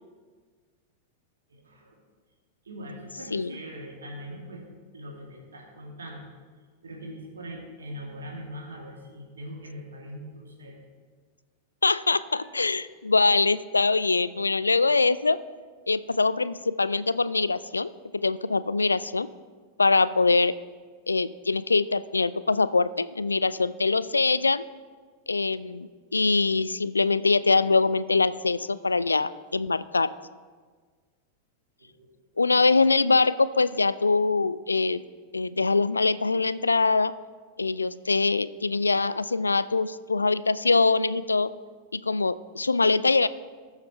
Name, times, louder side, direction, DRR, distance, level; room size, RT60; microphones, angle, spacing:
voice 1, 1.5-2.0 2.6-4.6 4.9-6.2 6.8-10.8 31.8-32.1, equal, 70° right, -1 dB, 2.6 m, -41 dB
voice 2, 11.8-15.4 15.9-19.3 19.8-20.5 21.1-24.6 25.3-30.1 32.4-35.0 35.3-37.1 37.6-41.5 41.9-43.3, left 3 dB, 80° left, 17 dB, 0.3 m, -23 dB
19.0 x 7.1 x 3.4 m, 1.5 s
figure-of-eight pair, 90°, 0 cm